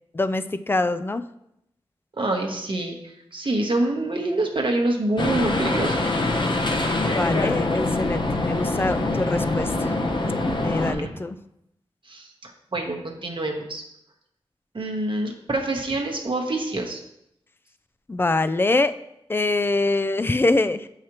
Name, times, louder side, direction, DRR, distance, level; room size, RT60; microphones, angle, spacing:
voice 1, 0.1-1.2 7.1-9.9 10.6-11.4 18.1-18.9 19.3-20.9, left 2 dB, 20° left, 12 dB, 0.3 m, -24 dB
voice 2, 2.2-3.0 3.3-6.1 10.7-11.1 12.1-13.8 14.7-17.0, right 2 dB, 55° right, 2 dB, 0.9 m, -26 dB
sound 1, 5.2-10.9, left 2 dB, 50° left, 0.8 m, -24 dB
7.2 x 4.9 x 2.9 m, 0.80 s
wide cardioid pair, 60°, 10 cm